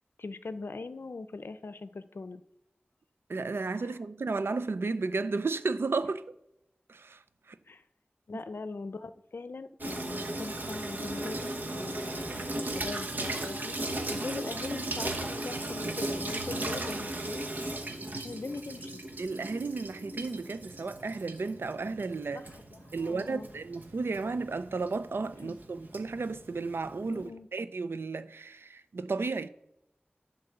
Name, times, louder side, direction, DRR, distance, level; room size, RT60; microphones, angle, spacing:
voice 1, 0.2-2.4 3.8-3.9 7.7-7.8 8.3-13.8 14.1-17.5 18.1-19.0 22.3-23.5 25.4-25.6 27.1-27.5, left 3 dB, 75° left, 0.5 m, -41 dB
voice 2, 3.3-6.2 6.9-7.2 7.5-7.6 19.2-22.5 22.9-29.5, right 3 dB, 90° right, 0.4 m, -33 dB
Water tap faucet / Sink (filling or washing), 9.8-27.3, right 1 dB, 50° right, 1.1 m, -37 dB
10.5 x 4.0 x 6.7 m
wide cardioid pair, 55°, 4 cm